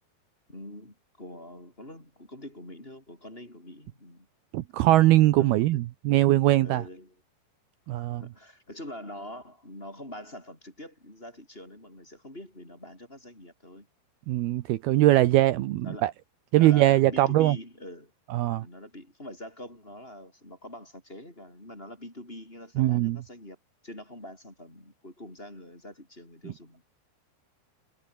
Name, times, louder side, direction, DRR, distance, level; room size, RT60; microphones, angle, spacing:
voice 1, 0.5-4.3 5.4-5.8 6.6-7.2 7.9-13.9 15.8-16.1 16.6-18.1 18.6-23.6 23.8-26.8, left 1 dB, 15° left, 5.8 m, -44 dB
voice 2, 4.5-6.8 7.9-8.2 14.3-16.1 16.5-17.6 18.3-18.7 22.8-23.2, right 16 dB, 75° right, 2.7 m, -21 dB
omnidirectional pair, 4.9 m